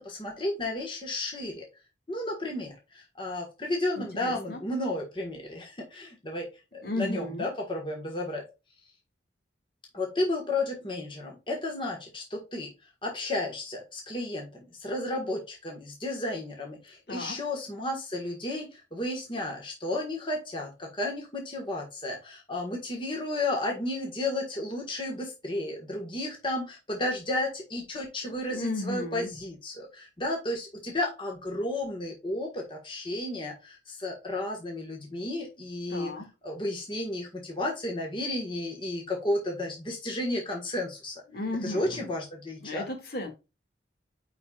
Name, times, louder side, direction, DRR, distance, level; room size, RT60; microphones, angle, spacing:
voice 1, 0.0-1.7 2.1-8.4 9.9-12.7 13.0-36.1 36.4-41.2 41.6-42.9, left 1 dB, 25° left, 1.5 m, -33 dB
voice 2, 4.0-4.6 6.8-7.5 17.1-17.4 28.5-29.3 35.9-36.3 41.3-42.1 42.6-43.3, left 1 dB, 55° left, 2.1 m, -34 dB
9.8 x 4.3 x 2.4 m
head